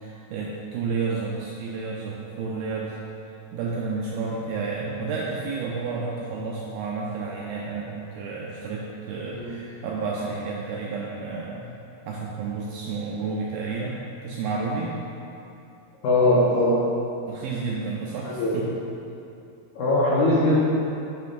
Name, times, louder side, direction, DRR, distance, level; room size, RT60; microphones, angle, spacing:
voice 1, 0.0-3.0 3.5-11.7 12.1-15.0 17.3-18.7, right 4 dB, 90° right, -4 dB, 2.1 m, -31 dB
voice 2, 16.0-16.8 18.2-18.6 19.8-20.6, left 1 dB, 80° left, -8 dB, 1.7 m, -21 dB
9.2 x 7.0 x 2.5 m, 2.7 s
omnidirectional pair, 5.0 m